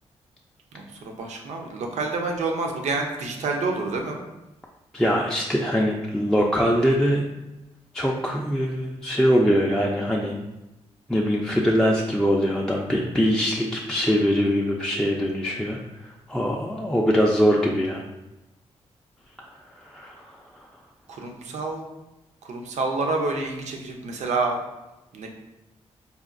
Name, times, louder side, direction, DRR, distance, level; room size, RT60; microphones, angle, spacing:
voice 1, 0.7-4.2 21.1-21.9 22.4-24.6 25.1-25.3, right 3 dB, 80° right, 3 dB, 0.5 m, -28 dB
voice 2, 4.9-7.2 7.9-10.3 11.1-15.8 16.3-18.0 19.4-19.5 19.8-20.4, equal, 5° left, -2 dB, 0.3 m, -22 dB
4.1 x 2.2 x 2.4 m, 0.97 s
cardioid pair, 80°, 12 cm